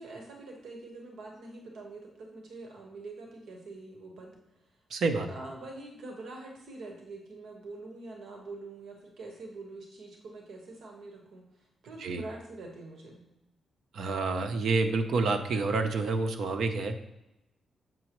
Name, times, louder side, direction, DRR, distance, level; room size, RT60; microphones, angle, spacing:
voice 1, 0.0-4.3 5.0-11.4 11.8-13.2, right 2 dB, 85° right, 0 dB, 1.4 m, -45 dB
voice 2, 4.9-5.3 12.0-12.2 13.9-17.0, right 3 dB, 70° right, 7 dB, 0.7 m, -28 dB
7.5 x 6.0 x 3.1 m, 0.92 s
wide cardioid pair, 160°, 0 cm